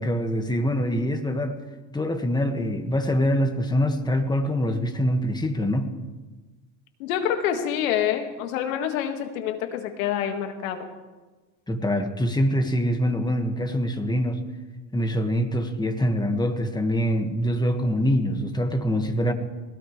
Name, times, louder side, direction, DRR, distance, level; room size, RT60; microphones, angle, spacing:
voice 1, 0.0-1.6 1.9-5.9 11.7-14.4 14.9-19.3, equal, 10° left, 6 dB, 1.8 m, -24 dB
voice 2, 7.0-10.9, left 9 dB, 85° left, 5 dB, 2.1 m, -27 dB
21.0 x 18.0 x 3.3 m, 1.2 s
supercardioid pair, 105°, 40 cm